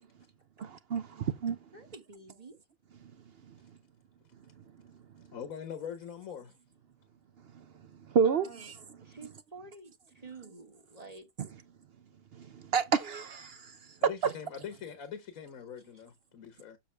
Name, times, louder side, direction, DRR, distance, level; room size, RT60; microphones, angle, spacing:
voice 1, 0.6-1.6 8.1-8.5 12.5-13.7 14.2-14.3, right 6 dB, 60° right, 0.7 m, -29 dB
voice 2, 1.7-2.6 8.2-8.7 9.0-11.3 15.8-16.1, right 4 dB, 30° right, 1.5 m, -49 dB
voice 3, 5.3-6.5 14.0-16.8, left 8 dB, 80° left, 1.5 m, -42 dB
7.2 x 6.7 x 3.3 m
omnidirectional pair, 1.4 m